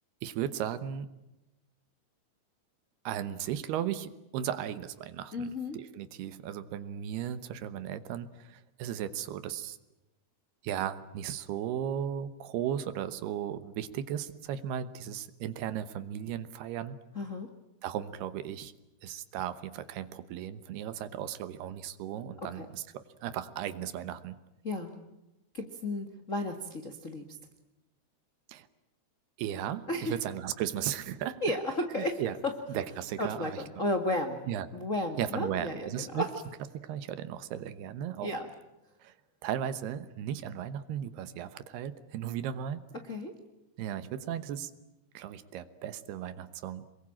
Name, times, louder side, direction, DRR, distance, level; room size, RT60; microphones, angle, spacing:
voice 1, 0.2-1.1 3.0-9.8 10.6-17.0 17.8-18.7 19.0-24.4 28.5-28.7 29.4-31.4 32.0-32.4 32.7-33.6 34.5-34.7 35.2-36.2 36.8-38.3 39.0-39.1 39.4-42.8 43.8-44.7 45.1-46.9, right 10 dB, 75° right, 13 dB, 3.0 m, -36 dB
voice 2, 5.3-5.8 17.1-17.5 22.5-22.6 24.6-25.0 25.5-27.2 29.9-30.1 31.4-32.5 33.2-34.4 34.7-36.3 38.2-38.5 43.0-43.3, left 1 dB, 65° left, 5 dB, 0.7 m, -33 dB
27.5 x 22.5 x 8.8 m, 0.94 s
omnidirectional pair, 5.0 m